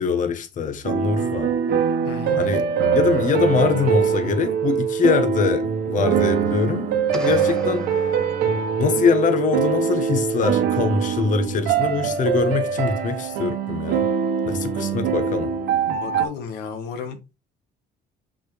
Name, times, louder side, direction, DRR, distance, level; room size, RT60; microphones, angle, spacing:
voice 1, 0.0-1.5 2.4-2.6 2.9-8.0 8.8-14.0 14.4-15.5, left 6 dB, 50° left, 1.2 m, -23 dB
sound 1, 0.8-16.3, right 7 dB, 80° right, 1.3 m, -23 dB
voice 2, 2.0-2.4 15.9-17.2, left 6 dB, 85° left, 1.5 m, -33 dB
sound 2, 7.1-9.0, equal, 5° left, 1.0 m, -39 dB
6.5 x 5.8 x 3.3 m
cardioid pair, 110°, 17 cm